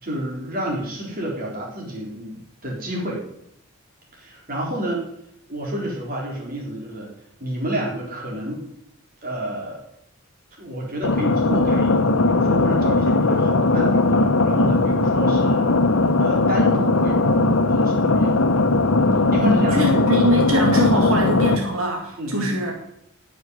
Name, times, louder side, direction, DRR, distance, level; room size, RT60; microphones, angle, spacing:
voice 1, 0.0-3.2 4.1-5.0 5.5-7.1 7.4-8.7 9.2-9.8 10.6-15.7 16.2-17.4 17.7-18.4 19.3-19.8 22.2-22.5, right 1 dB, 40° right, -2 dB, 4.0 m, -29 dB
sound 1, 11.0-21.6, left 2 dB, 70° left, 1.1 m, -19 dB
voice 2, 19.3-22.7, equal, 80° right, 0 dB, 2.6 m, -22 dB
11.0 x 7.2 x 9.5 m, 0.79 s
head